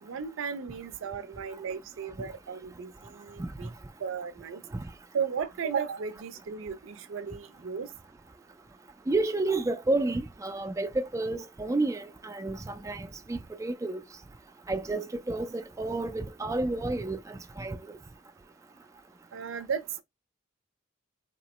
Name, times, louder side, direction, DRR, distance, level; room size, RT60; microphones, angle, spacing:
voice 1, 0.0-3.7 4.0-4.7 5.1-7.9 19.3-20.0, right 6 dB, 90° right, 0.4 m, -35 dB
voice 2, 9.1-14.0 14.7-18.0, right 2 dB, 15° right, 0.3 m, -31 dB
3.6 x 2.0 x 2.9 m
head